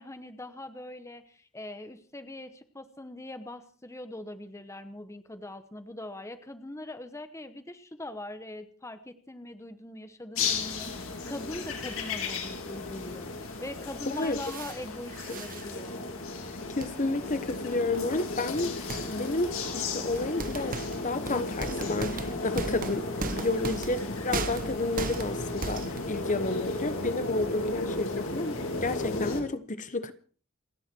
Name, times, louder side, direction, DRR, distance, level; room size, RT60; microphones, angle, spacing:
voice 1, 0.0-16.0, left 1 dB, 15° left, 1.0 m, -42 dB
sound 1, 10.4-29.4, left 3 dB, 70° left, 3.3 m, -34 dB
voice 2, 14.1-14.4 15.3-15.4 16.5-20.8 21.0-28.6 28.8-30.1, left 2 dB, 35° left, 1.1 m, -31 dB
sound 2, 14.2-14.8 15.1-15.7 16.8-16.9 17.9-18.0 18.6-19.3 20.2-26.2, right 3 dB, 40° right, 1.1 m, -37 dB
29.0 x 9.9 x 4.5 m
head